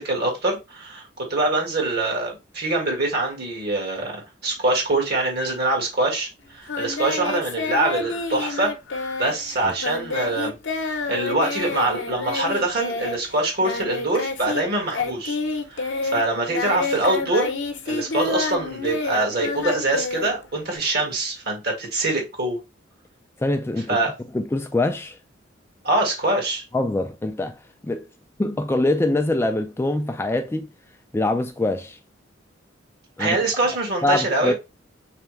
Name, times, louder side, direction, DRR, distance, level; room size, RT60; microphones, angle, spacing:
voice 1, 0.0-8.7 9.2-10.6 10.8-15.4 15.7-17.5 17.9-22.6 23.9-24.1 25.8-26.6 33.2-34.5, right 2 dB, 55° right, 1.6 m, -24 dB
Singing, 6.7-14.6 14.9-20.8, left 3 dB, 70° left, 0.8 m, -28 dB
voice 2, 23.4-23.9 24.3-25.2 26.7-27.5 27.8-28.1 28.4-30.7 31.1-32.0 33.2-33.4 34.0-34.5, left 2 dB, 15° left, 0.3 m, -23 dB
3.6 x 3.3 x 3.1 m
head